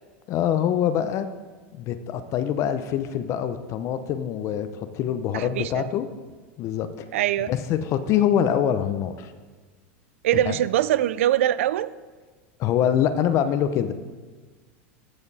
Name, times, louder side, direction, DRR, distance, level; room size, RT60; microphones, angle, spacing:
voice 1, 0.3-1.3 1.7-6.1 6.6-6.9 7.5-9.3 10.5-10.6 12.6-13.9, left 9 dB, 45° left, 10 dB, 0.7 m, -24 dB
voice 2, 5.3-5.8 7.1-7.5 10.2-11.9, right 12 dB, 80° right, 17 dB, 0.4 m, -23 dB
14.5 x 5.0 x 4.1 m, 1.4 s
supercardioid pair, 115°, 7 cm